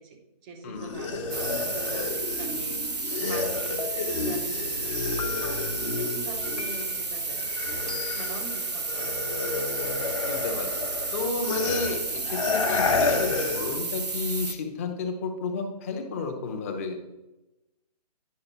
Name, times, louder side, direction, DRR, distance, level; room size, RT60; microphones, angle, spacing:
voice 1, 0.0-7.5 8.1-9.3, right 2 dB, 10° right, 3 dB, 0.6 m, -43 dB
voice 2, 0.6-1.0 10.2-10.8 11.1-17.0, left 4 dB, 20° left, 4 dB, 0.8 m, -32 dB
sound 1, 0.8-7.0 7.3-13.8, left 4 dB, 50° left, 1.1 m, -31 dB
sound 2, 1.3-14.5, right 3 dB, 75° right, 0.9 m, -32 dB
sound 3, 3.8-4.4 5.2-5.8 6.6-7.2 7.9-8.5, left 9 dB, 65° left, 0.6 m, -39 dB
9.6 x 6.4 x 2.9 m, 0.98 s
figure-of-eight pair, 140°, 21 cm